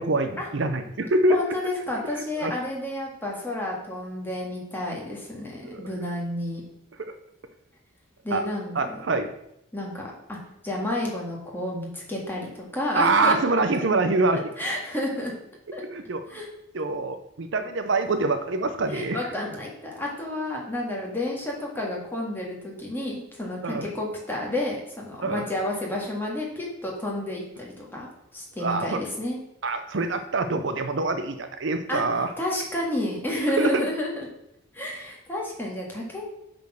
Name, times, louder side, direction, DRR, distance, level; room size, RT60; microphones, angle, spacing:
voice 1, 0.0-1.4 2.4-2.5 5.6-5.8 7.0-7.1 8.3-8.5 8.7-9.3 12.9-14.4 15.8-16.2 16.7-19.3 23.6-23.9 25.2-25.4 28.6-29.0 29.6-32.3 33.6-33.8, right 3 dB, 60° right, 8 dB, 0.6 m, -25 dB
voice 2, 1.3-6.6 8.2-9.0 9.7-10.4 10.6-13.4 13.7-13.8 14.3-15.3 15.7-15.8 16.3-16.5 18.9-28.1 28.3-29.4 31.9-32.0 32.4-34.1 34.7-36.3, left 1 dB, 10° left, -2 dB, 1.9 m, -30 dB
8.3 x 4.4 x 6.3 m, 0.80 s
head